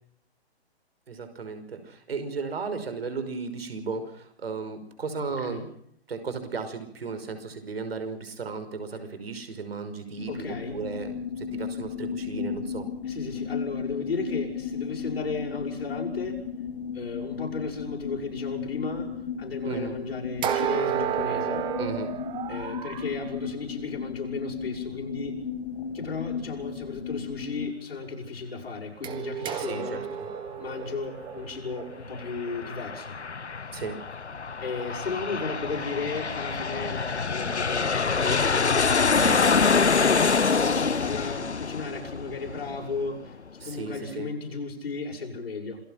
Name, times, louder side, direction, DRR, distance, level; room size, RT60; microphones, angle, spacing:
voice 1, 1.1-5.6 6.1-12.9 19.6-19.9 21.8-22.1 29.6-30.3 33.7-34.0 39.2-39.5 43.6-44.3, right 4 dB, 65° right, 8 dB, 5.6 m, -35 dB
voice 2, 5.4-5.7 10.3-10.8 13.0-16.4 16.9-21.7 22.5-25.5 25.9-30.0 30.6-33.1 34.6-38.4 39.6-45.8, left 4 dB, 65° left, -2 dB, 6.7 m, -35 dB
sound 1, 10.2-27.7, left 7 dB, 40° left, 2.3 m, -35 dB
sound 2, 20.4-23.1 29.0-33.1, right 9 dB, 15° right, 1.7 m, -32 dB
Aircraft, 32.0-43.2, left 5 dB, 90° left, 0.8 m, -26 dB
27.5 x 19.0 x 5.9 m, 0.70 s
figure-of-eight pair, 130°, 33 cm